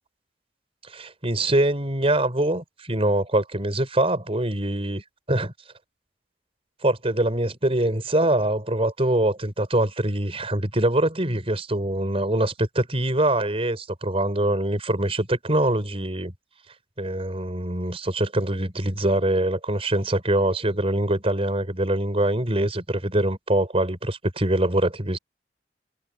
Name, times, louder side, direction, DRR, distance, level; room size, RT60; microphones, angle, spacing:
voice 1, 0.9-5.5 6.8-16.3 17.0-25.2, right 1 dB, 35° right, 5.6 m, -24 dB
head